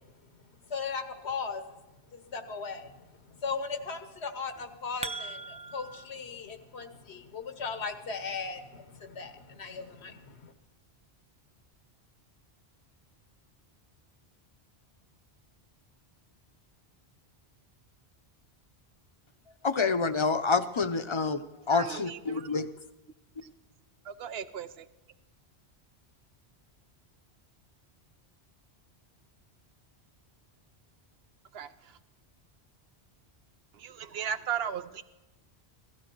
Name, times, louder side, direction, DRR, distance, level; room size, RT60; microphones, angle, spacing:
voice 1, 0.7-1.6 2.1-2.9 3.4-10.5, left 5 dB, 85° left, 8 dB, 1.4 m, -37 dB
sound 1, 4.5-6.0, right 3 dB, 10° right, 0.4 m, -39 dB
voice 2, 19.6-21.4 21.7-22.7, left 4 dB, 35° left, 10 dB, 0.6 m, -27 dB
voice 3, 21.7-22.6 24.1-24.8 31.5-31.7 33.8-35.0, right 8 dB, 70° right, 12 dB, 0.9 m, -36 dB
16.5 x 13.5 x 4.6 m, 1.0 s
omnidirectional pair, 1.1 m